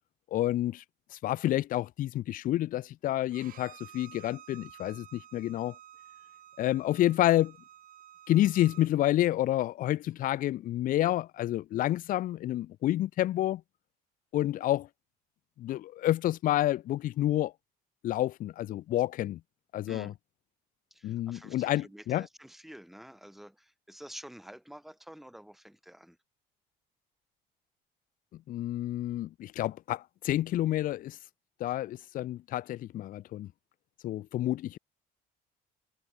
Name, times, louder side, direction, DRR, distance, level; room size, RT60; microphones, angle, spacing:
voice 1, 0.3-0.8 1.1-5.7 6.6-7.6 8.3-13.6 14.3-14.9 15.6-17.5 18.0-19.4 19.7-20.1 21.0-22.3 28.5-31.2 31.6-33.5 34.0-34.8, left 14 dB, 55° left, 0.4 m, -29 dB
Bowed string instrument, 3.3-8.9, right 11 dB, 55° right, 1.1 m, -52 dB
voice 2, 19.9-20.2 20.9-26.2, equal, ahead, 1.9 m, -49 dB
cardioid pair, 110°, 17 cm